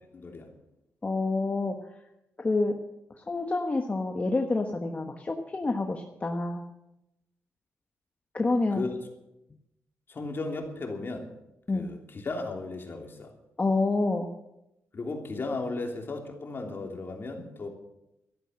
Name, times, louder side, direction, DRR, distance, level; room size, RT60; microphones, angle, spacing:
voice 1, 0.1-0.5 8.7-8.9 10.1-11.3 11.7-13.3 14.9-17.7, left 3 dB, 45° left, 3 dB, 3.1 m, -35 dB
voice 2, 1.0-1.7 2.4-2.8 3.2-6.6 8.3-8.9 11.7-11.9 13.6-14.3, left 3 dB, 30° left, 3 dB, 1.3 m, -28 dB
13.0 x 11.5 x 7.6 m, 0.89 s
cardioid pair, 85°, 5 cm